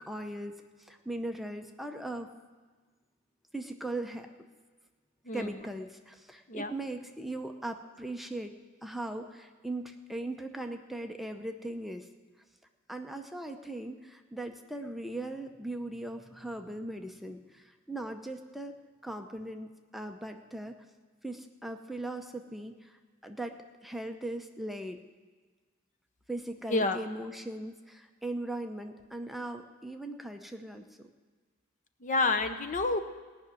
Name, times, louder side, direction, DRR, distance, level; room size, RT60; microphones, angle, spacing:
voice 1, 0.0-2.3 3.5-4.3 5.3-8.6 8.8-12.1 12.9-18.7 19.0-20.8 21.2-25.0 26.3-31.1, right 1 dB, ahead, 4 dB, 0.7 m, -39 dB
voice 2, 32.0-33.0, left 3 dB, 35° left, 9 dB, 0.8 m, -28 dB
18.0 x 6.1 x 9.1 m, 1.4 s
head